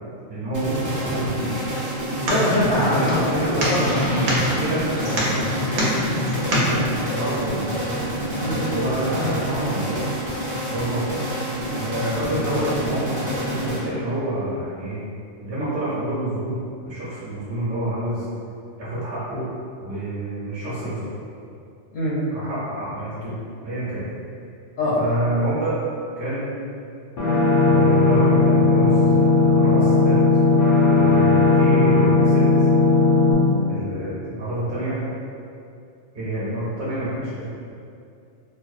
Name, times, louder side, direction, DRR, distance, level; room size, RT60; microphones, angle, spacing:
voice 1, 0.3-1.6 2.7-3.5 4.4-5.9 6.6-7.7 8.7-10.1 10.7-11.1 11.7-15.0 15.4-18.3 18.8-19.5 19.8-21.1 22.3-23.3 23.6-24.1 25.0-25.7 26.2-26.5 27.6-30.2 30.9-32.5 33.7-35.0 36.1-37.5, right 1 dB, 55° right, -10 dB, 0.9 m, -28 dB
sound 1, 0.5-14.2, equal, 30° right, 0.3 m, -28 dB
sound 2, 1.8-6.8, equal, 90° right, 0.9 m, -25 dB
voice 2, 2.1-4.4 8.4-8.6 21.9-22.2 24.8-25.0, left 1 dB, 70° left, -9 dB, 0.8 m, -24 dB
sound 3, 27.2-33.3, left 3 dB, 85° left, 1.0 m, -16 dB
2.6 x 2.0 x 2.4 m, 2.5 s
omnidirectional pair, 1.2 m